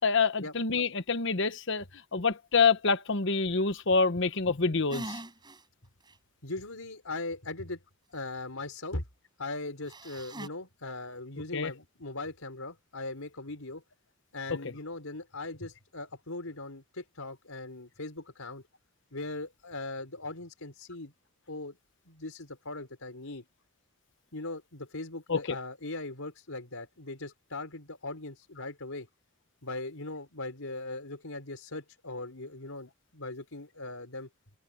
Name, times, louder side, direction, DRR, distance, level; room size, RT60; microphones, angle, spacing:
voice 1, 0.0-1.8 2.1-5.2 11.5-11.7 25.3-25.6, left 4 dB, 60° left, 1.1 m, -26 dB
sound 1, 4.9-5.6 6.1-6.2 9.9-10.5, right 1 dB, 20° right, 7.1 m, -41 dB
voice 2, 6.4-7.8 8.1-9.0 9.4-13.8 14.3-18.6 19.1-21.1 21.5-21.8 22.0-23.4 24.3-29.1 29.6-34.3, left 2 dB, 85° left, 4.7 m, -39 dB
open air
head